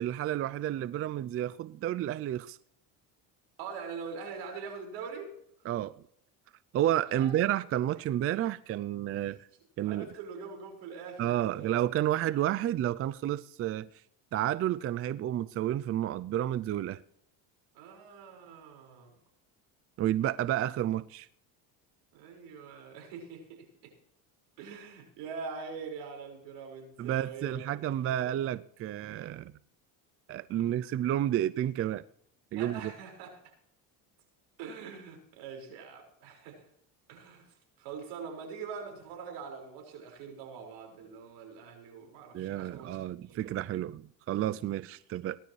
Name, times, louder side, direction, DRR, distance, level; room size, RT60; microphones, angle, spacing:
voice 1, 0.0-2.6 5.6-5.9 6.7-9.4 9.8-10.1 11.2-13.9 14.3-17.0 20.0-21.3 27.0-29.5 30.3-32.0 32.5-32.9 42.3-45.4, right 12 dB, 35° right, 0.4 m, -31 dB
voice 2, 3.6-5.3 7.0-7.4 9.3-9.4 9.8-11.8 17.7-19.1 22.1-23.9 24.6-28.3 32.6-33.3 34.6-36.6 37.1-37.5 37.8-43.5, right 5 dB, 75° right, 5.4 m, -43 dB
18.5 x 12.0 x 3.2 m
supercardioid pair, 105°, 42 cm